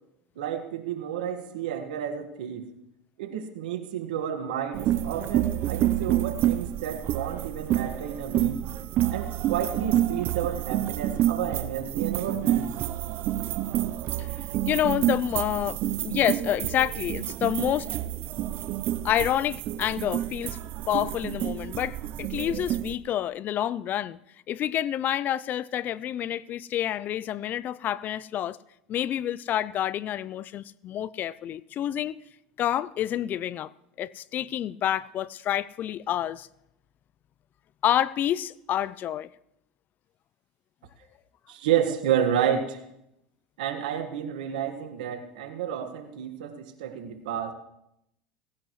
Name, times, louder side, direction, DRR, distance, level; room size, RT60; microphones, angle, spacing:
voice 1, 0.4-2.7 3.2-8.6 9.1-12.7 41.5-42.8 43.6-47.5, right 9 dB, 80° right, 1.7 m, -30 dB
sound 1, 4.7-22.9, right 13 dB, 50° right, 0.6 m, -28 dB
voice 2, 14.7-17.9 19.0-20.6 20.9-24.2 24.5-28.6 28.9-32.2 32.6-33.7 34.0-36.5 37.8-39.3, left 11 dB, 45° left, 0.5 m, -28 dB
18.0 x 16.5 x 3.2 m
hypercardioid pair, 95°, 4 cm